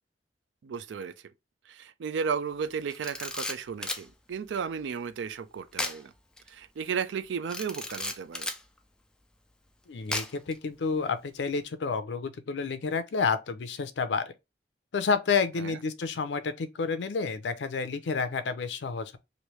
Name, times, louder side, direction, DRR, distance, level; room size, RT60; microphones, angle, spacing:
voice 1, 0.6-1.1 1.7-6.1 6.5-8.5 15.6-15.8, right 6 dB, 85° right, 0.4 m, -34 dB
Camera, 2.9-4.1 5.7-6.0 6.4-6.5 7.5-8.6 10.1-10.5, left 2 dB, 5° left, 0.3 m, -34 dB
voice 2, 9.9-14.2 14.9-19.2, left 5 dB, 80° left, 0.5 m, -30 dB
3.2 x 2.6 x 3.0 m
head